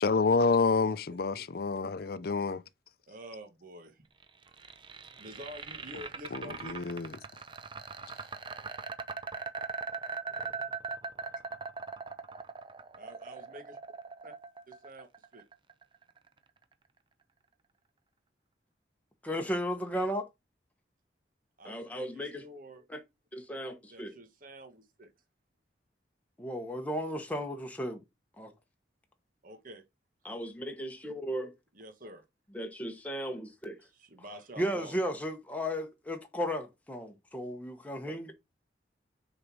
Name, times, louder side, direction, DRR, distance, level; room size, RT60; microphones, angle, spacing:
voice 1, 0.0-2.6 6.3-7.2, left 4 dB, 55° left, 0.5 m, -28 dB
voice 2, 3.1-4.0 5.2-6.7 13.0-13.8 14.2-14.3 14.7-15.1 15.3-15.4 21.6-22.8 23.9-25.1 29.4-29.8 31.7-32.2 33.9-35.0, equal, 50° right, 1.4 m, -48 dB
sound 1, 4.2-16.3, right 5 dB, 25° right, 0.7 m, -40 dB
voice 3, 19.2-20.3 21.6-22.4 22.9-23.0 23.3-24.1 26.4-28.0 28.4-28.5 30.2-31.5 32.5-33.8 34.6-38.3, equal, 10° left, 1.1 m, -35 dB
6.4 x 4.1 x 6.1 m
head